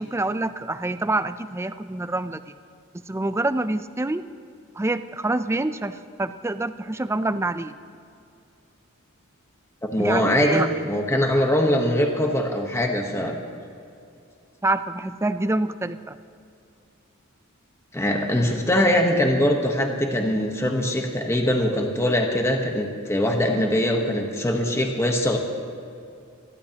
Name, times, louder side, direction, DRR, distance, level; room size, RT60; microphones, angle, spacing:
voice 1, 0.0-2.5 3.1-4.3 4.8-7.8 10.0-10.7 14.6-16.2, right 2 dB, 10° right, 11 dB, 0.4 m, -26 dB
voice 2, 9.9-13.3 17.9-25.4, left 1 dB, 10° left, 2 dB, 1.1 m, -22 dB
27.5 x 12.0 x 2.9 m, 2.5 s
head